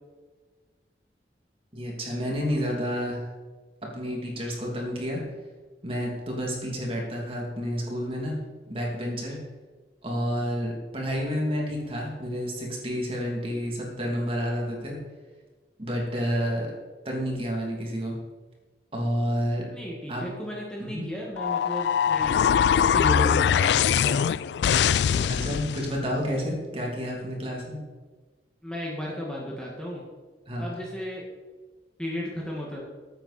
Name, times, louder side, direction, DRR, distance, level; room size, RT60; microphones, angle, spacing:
voice 1, 1.7-3.2 3.9-5.2 5.8-8.3 8.7-9.4 10.0-15.0 15.8-16.7 17.0-18.1 18.9-19.6 20.1-20.3 20.8-21.1 25.3-27.8 30.5-30.7, equal, 30° right, -2 dB, 2.9 m, -30 dB
voice 2, 19.7-24.2 25.1-25.3 28.6-30.0 30.6-31.2 32.0-32.8, equal, 5° left, -3 dB, 1.9 m, -34 dB
sound 1, 21.4-25.9, left 8 dB, 75° left, 0.3 m, -22 dB
14.0 x 8.9 x 4.3 m, 1.4 s
head